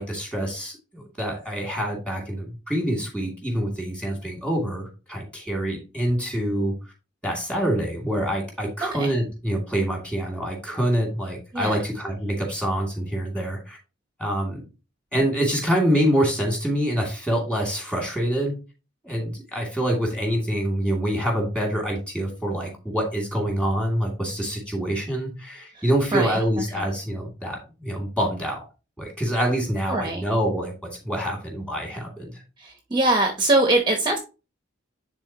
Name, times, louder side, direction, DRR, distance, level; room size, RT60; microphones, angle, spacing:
voice 1, 0.0-6.8 7.2-13.8 14.2-14.6 15.1-18.5 19.0-28.7 29.0-32.4, equal, 5° left, -1 dB, 2.5 m, -26 dB
voice 2, 26.1-26.4 26.7-26.8 29.9-30.2 32.6-34.2, right 2 dB, 25° right, 3 dB, 0.9 m, -23 dB
10.5 x 4.0 x 2.9 m, 0.30 s
head